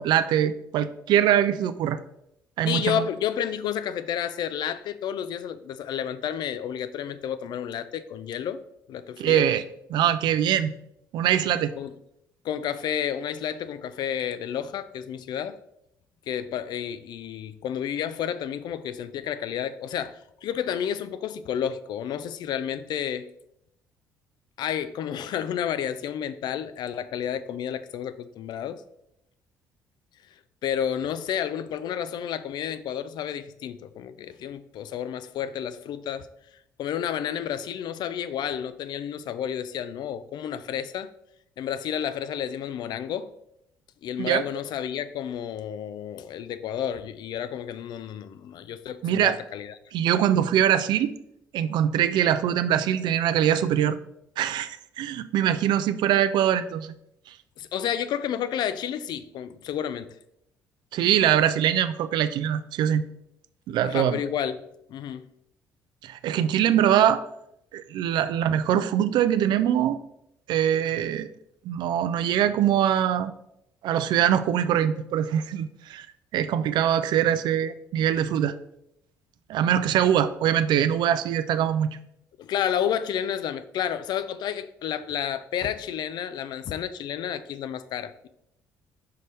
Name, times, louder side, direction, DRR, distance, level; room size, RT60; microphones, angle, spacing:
voice 1, 0.0-2.0 2.6-3.1 9.2-9.6 9.9-10.7 11.1-11.7 44.2-44.5 49.0-49.4 49.9-51.1 51.5-54.0 54.4-56.9 57.3-57.4 60.9-63.0 63.7-64.2 66.0-67.2 67.7-70.0 70.5-71.3 71.6-73.3 73.8-76.1 76.3-78.5 79.5-82.0, right 10 dB, 55° right, 0.4 m, -23 dB
voice 2, 2.6-8.6 8.9-9.5 11.8-11.9 12.4-15.6 16.3-23.3 24.6-28.8 30.6-36.3 36.8-41.1 41.6-43.3 44.0-49.7 57.6-60.1 63.8-64.6 64.9-65.3 82.4-88.3, left 9 dB, 55° left, 0.4 m, -31 dB
5.7 x 5.2 x 3.2 m
figure-of-eight pair, 50°, 9 cm